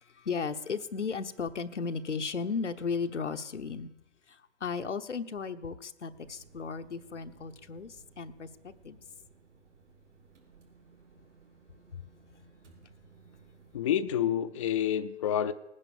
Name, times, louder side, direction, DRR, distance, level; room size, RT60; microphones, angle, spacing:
voice 1, 0.1-3.9 4.3-8.5 8.8-9.0, left 5 dB, 90° left, 8 dB, 1.0 m, -35 dB
sound 1, 6.1-13.9, right 4 dB, 85° right, 4.8 m, -59 dB
voice 2, 13.7-15.5, left 10 dB, 30° left, 10 dB, 0.5 m, -28 dB
19.0 x 9.8 x 7.1 m, 0.97 s
hypercardioid pair, 140°, 34 cm